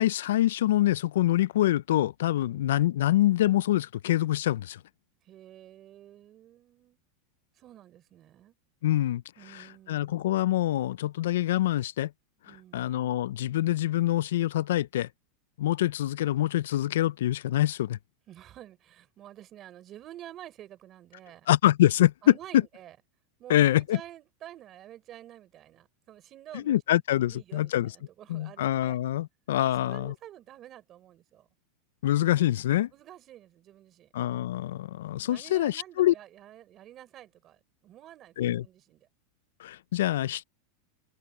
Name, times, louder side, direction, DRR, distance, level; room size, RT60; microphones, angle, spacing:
voice 1, 0.0-4.8 8.8-9.2 9.5-12.1 12.5-15.1 15.6-18.0 21.5-22.1 23.5-24.0 26.5-27.9 28.3-30.1 32.0-32.9 34.1-36.1 38.4-38.6 39.6-40.4, left 13 dB, 75° left, 0.3 m, -25 dB
voice 2, 2.3-2.9 5.2-7.0 7.5-8.5 9.4-10.2 12.4-12.9 18.3-21.5 22.2-23.0 23.4-29.0 29.6-31.5 32.9-34.1 35.2-39.1, right 12 dB, 25° right, 4.6 m, -49 dB
supercardioid pair, 175°, 0 cm